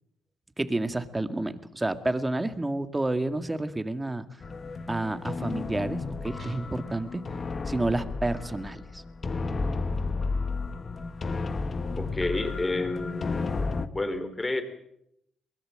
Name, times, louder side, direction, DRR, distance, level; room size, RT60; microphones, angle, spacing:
voice 1, 0.6-4.3 4.9-7.2 7.7-9.0, right 2 dB, 15° right, 10 dB, 2.0 m, -30 dB
sound 1, 4.4-13.9, left 3 dB, 35° left, 1.7 m, -32 dB
Guitar, 6.4-7.2, right 5 dB, 40° right, 3.0 m, -49 dB
voice 2, 12.0-13.5 13.9-14.6, left 2 dB, 20° left, 9 dB, 3.9 m, -30 dB
23.0 x 20.5 x 7.8 m, 0.76 s
cardioid pair, 90°, 0 cm